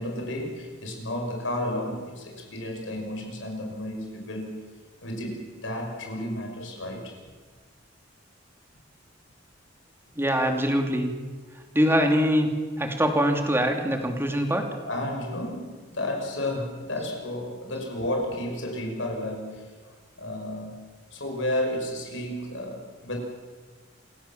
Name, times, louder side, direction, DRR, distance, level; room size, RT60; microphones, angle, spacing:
voice 1, 0.0-4.6 5.0-7.2 14.9-20.8 21.1-23.2, left 1 dB, 75° left, 2 dB, 5.9 m, -32 dB
voice 2, 10.1-11.1 11.7-14.6, equal, 10° right, 3 dB, 3.0 m, -23 dB
27.5 x 17.5 x 7.4 m, 1.5 s
head